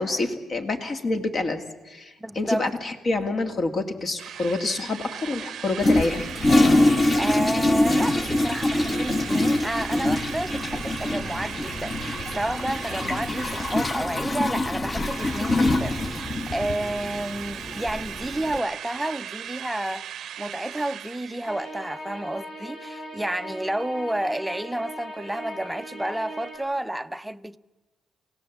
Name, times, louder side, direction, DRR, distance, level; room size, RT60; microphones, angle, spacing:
voice 1, 0.0-6.2, left 2 dB, 45° left, 2.3 m, -27 dB
voice 2, 2.2-2.7 7.2-27.6, right 1 dB, 5° right, 0.7 m, -30 dB
Drill, 4.2-14.6 14.9-21.8, right 10 dB, 70° right, 0.7 m, -38 dB
Toilet flush, 5.8-18.6, left 2 dB, 30° left, 1.4 m, -24 dB
sound 1, 21.4-26.6, equal, 60° left, 7.8 m, -39 dB
28.5 x 17.0 x 7.3 m
cardioid pair, 90°, 0 cm